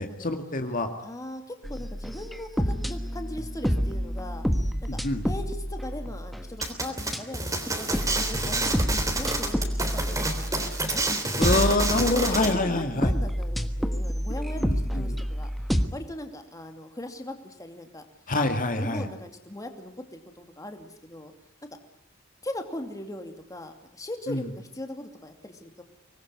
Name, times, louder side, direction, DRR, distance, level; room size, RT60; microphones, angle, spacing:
voice 1, 0.0-0.9 4.9-5.2 11.4-13.1 14.6-15.2 18.3-19.1 24.3-24.5, left 2 dB, 40° left, 6 dB, 2.2 m, -26 dB
voice 2, 1.0-5.0 5.2-10.5 10.9-11.5 11.9-15.5 15.9-18.0 18.4-21.3 22.4-25.8, left 1 dB, 15° left, 5 dB, 2.6 m, -39 dB
sound 1, 1.6-6.7 7.0-7.2 7.7-11.0 11.3-15.9, equal, ahead, 1.4 m, -29 dB
sound 2, 6.6-12.5, right 2 dB, 15° right, 3.4 m, -28 dB
25.0 x 20.5 x 9.7 m, 0.70 s
head